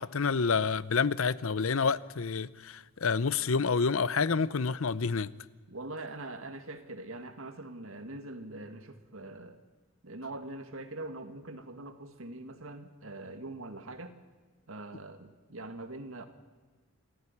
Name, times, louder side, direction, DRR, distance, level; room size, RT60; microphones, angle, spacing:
voice 1, 0.0-5.3, left 5 dB, 70° left, 0.7 m, -28 dB
voice 2, 5.7-9.6 10.0-14.1 14.7-16.3, right 2 dB, 70° right, 2.0 m, -43 dB
27.5 x 14.5 x 9.8 m
head